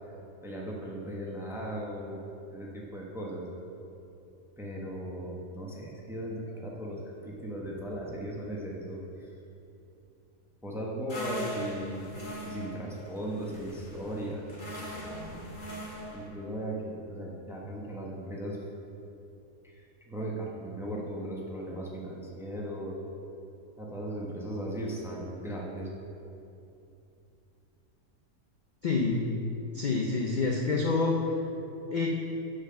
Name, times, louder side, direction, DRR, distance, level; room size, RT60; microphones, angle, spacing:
voice 1, 0.4-2.2 2.5-3.5 4.6-9.3 10.6-12.2 12.4-14.5 16.1-18.6 19.6-23.0 23.8-25.9, right 1 dB, ahead, -3 dB, 0.7 m, -37 dB
sound 1, 11.1-16.3, equal, 35° left, 1.3 m, -40 dB
voice 2, 28.8-29.3 29.7-31.2 31.9-32.1, left 3 dB, 60° left, -1 dB, 0.4 m, -27 dB
7.3 x 4.9 x 5.6 m, 2.8 s
omnidirectional pair, 1.5 m